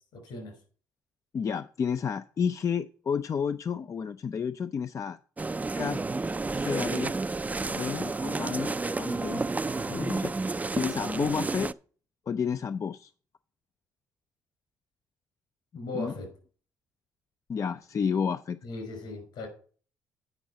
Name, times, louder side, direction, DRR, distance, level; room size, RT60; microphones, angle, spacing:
voice 1, 0.1-0.5 9.9-10.1 15.7-16.3 18.6-19.5, left 2 dB, 75° left, 4 dB, 5.2 m, -37 dB
voice 2, 1.3-5.2 5.8-6.0 6.5-7.1 7.7-9.4 9.9-10.3 10.8-11.7 12.3-13.1 15.9-16.1 17.5-18.6, left 6 dB, 45° left, 10 dB, 0.5 m, -31 dB
sound 1, 5.4-11.7, right 3 dB, 20° right, 0.4 m, -31 dB
9.0 x 5.4 x 6.1 m, 0.42 s
hypercardioid pair, 55°, 8 cm